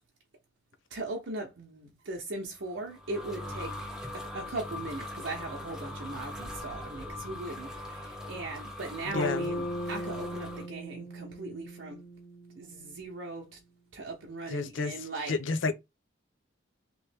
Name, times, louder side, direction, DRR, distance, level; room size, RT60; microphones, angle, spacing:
voice 1, 0.9-3.7 4.1-12.0 12.5-13.6 13.9-15.3, right 2 dB, 70° right, 0.8 m, -39 dB
sound 1, 2.7-10.7, left 1 dB, 5° right, 0.6 m, -41 dB
voice 2, 9.1-9.5 14.5-15.7, left 4 dB, 75° left, 0.5 m, -31 dB
Bass guitar, 9.1-13.2, equal, 40° left, 0.9 m, -38 dB
3.1 x 3.0 x 3.4 m
head